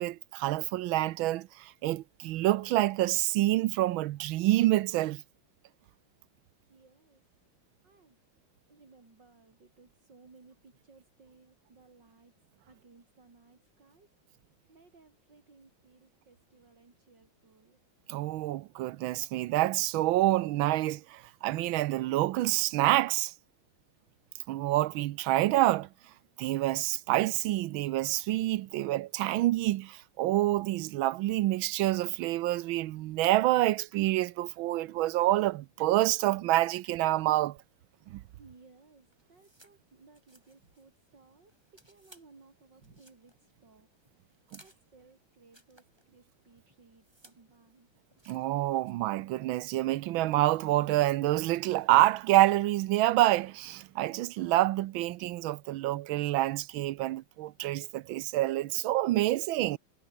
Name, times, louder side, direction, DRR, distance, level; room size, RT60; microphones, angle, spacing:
voice 1, 0.0-5.2 18.1-23.3 24.5-25.9 26.4-37.6 38.1-38.2 48.3-59.8, right 16 dB, 85° right, 1.4 m, -27 dB
voice 2, 6.6-7.3 7.6-8.2 8.7-12.4 12.7-14.3 14.7-17.8 38.2-43.9 44.1-47.9, right 4 dB, 60° right, 4.9 m, -60 dB
sound 1, 38.1-49.4, right 1 dB, 10° right, 4.1 m, -64 dB
omnidirectional pair, 2.2 m